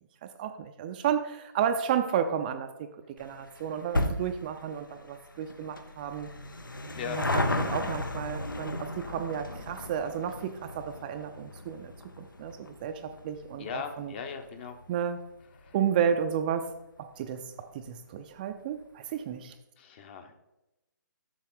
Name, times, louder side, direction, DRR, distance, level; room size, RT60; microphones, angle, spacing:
voice 1, 0.4-2.9 3.2-6.3 7.1-11.9 12.2-14.1 14.9-15.2 15.7-16.7 17.2-19.5, right 8 dB, 25° right, 7 dB, 0.4 m, -32 dB
sound 1, 3.2-15.9 16.2-16.3 17.2-17.3 17.5-17.6 17.9-18.0, left 2 dB, 85° left, 0.9 m, -35 dB
voice 2, 13.6-14.8 15.6-15.8 19.8-20.3, left 6 dB, 30° left, 6 dB, 0.9 m, -38 dB
7.5 x 6.4 x 3.8 m, 0.95 s
figure-of-eight pair, 140°, 11 cm